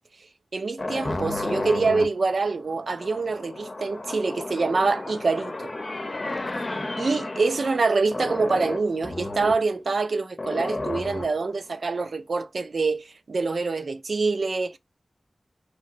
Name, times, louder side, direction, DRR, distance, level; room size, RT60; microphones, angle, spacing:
voice 1, 0.5-5.7 7.0-14.8, right 4 dB, 80° right, 0.4 m, -25 dB
sound 1, 0.8-7.8 8.1-9.6 10.4-11.5, left 2 dB, 45° left, 0.7 m, -32 dB
3.0 x 2.9 x 2.5 m
wide cardioid pair, 70°, 0 cm